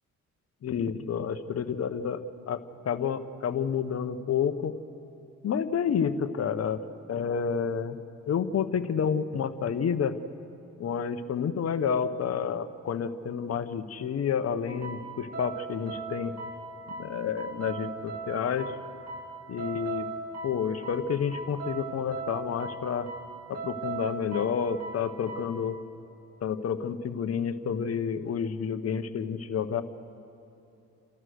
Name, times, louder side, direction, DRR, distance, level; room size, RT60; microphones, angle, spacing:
voice 1, 0.6-2.2 2.5-2.6 2.8-4.8 5.4-6.8 7.1-8.0 8.3-10.1 10.8-16.3 17.0-18.7 19.5-20.1 20.4-23.1 23.5-25.8 26.4-29.8, left 7 dB, 55° left, 10 dB, 1.1 m, -29 dB
sound 1, 14.7-25.5, right 4 dB, 55° right, 2.8 m, -39 dB
30.0 x 13.5 x 6.5 m, 3.0 s
cardioid pair, 90°, 30 cm